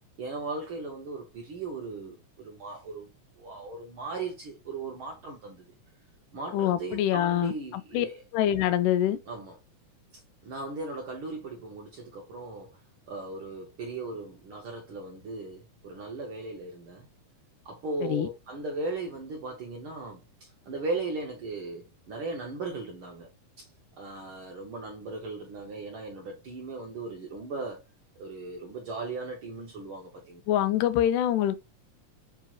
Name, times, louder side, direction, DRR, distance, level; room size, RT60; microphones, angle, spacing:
voice 1, 0.2-3.1 3.4-5.7 6.3-8.2 9.3-9.6 10.4-12.8 13.1-17.1 17.6-20.2 20.7-23.3 23.6-23.7 24.0-27.9 28.2-30.4, right 3 dB, 75° right, 1.2 m, -37 dB
voice 2, 6.5-8.1 8.3-9.2 18.0-18.3 30.5-31.6, left 11 dB, 85° left, 2.1 m, -25 dB
7.2 x 3.0 x 2.4 m
omnidirectional pair, 3.6 m